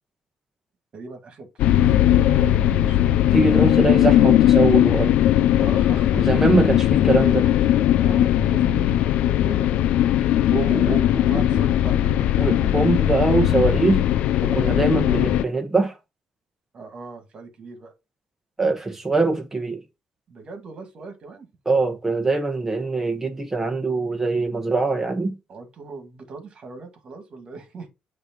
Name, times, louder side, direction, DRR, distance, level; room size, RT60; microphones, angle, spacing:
voice 1, 0.9-1.5 1.8-3.1 5.6-6.4 6.8-6.9 7.4-7.6 8.0-9.7 10.4-10.6 10.9-12.3 15.0-15.2 16.7-17.9 20.3-21.5 23.6-23.7 25.5-27.9, right 4 dB, 50° right, 2.2 m, -39 dB
sound 1, 1.6-15.4, left 12 dB, 85° left, 0.4 m, -19 dB
voice 2, 3.3-5.1 6.3-7.4 10.5-11.0 11.3-11.5 12.4-14.0 14.4-15.9 18.6-19.8 21.7-25.3, right 3 dB, 15° right, 1.7 m, -22 dB
8.7 x 3.3 x 4.5 m
cardioid pair, 105°, 2 cm